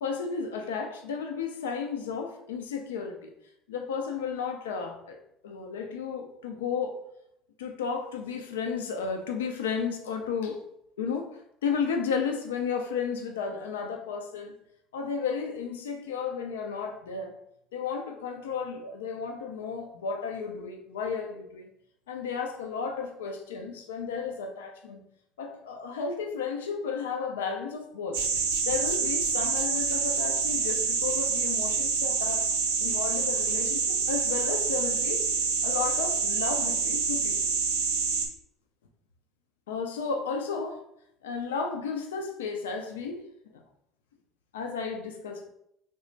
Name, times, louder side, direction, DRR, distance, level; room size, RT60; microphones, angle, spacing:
voice 1, 0.0-3.3 3.7-5.2 5.4-7.0 7.6-10.6 11.0-11.3 11.6-14.5 14.9-17.3 17.7-21.7 22.1-25.0 25.4-28.2 28.7-32.5 32.8-35.2 35.6-37.4 39.7-40.8 41.2-43.2 43.5-43.6 44.5-45.5, left 5 dB, 90° left, 4 dB, 0.3 m, -33 dB
sound 1, 28.1-38.3, right 6 dB, 85° right, 0.5 m, -27 dB
3.3 x 2.1 x 3.8 m, 0.78 s
hypercardioid pair, 75°, 0 cm